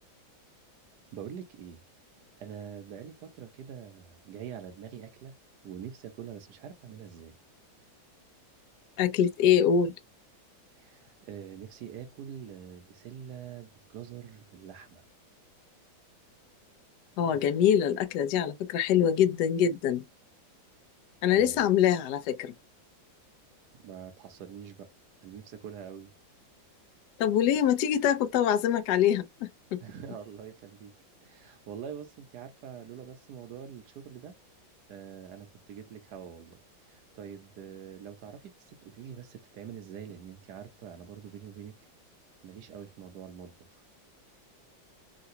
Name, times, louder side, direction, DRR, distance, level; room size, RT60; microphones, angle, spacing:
voice 1, 1.1-1.8 2.4-5.3 5.6-7.4 10.8-15.0 21.3-21.7 23.7-24.9 25.2-26.1 29.8-30.9 31.2-34.4 34.9-36.6 36.8-41.8 42.4-43.5, right 8 dB, 65° right, 1.3 m, -44 dB
voice 2, 9.0-9.9 17.2-20.0 21.2-22.5 27.2-29.8, left 9 dB, 70° left, 1.0 m, -24 dB
3.8 x 2.3 x 2.6 m
omnidirectional pair, 2.2 m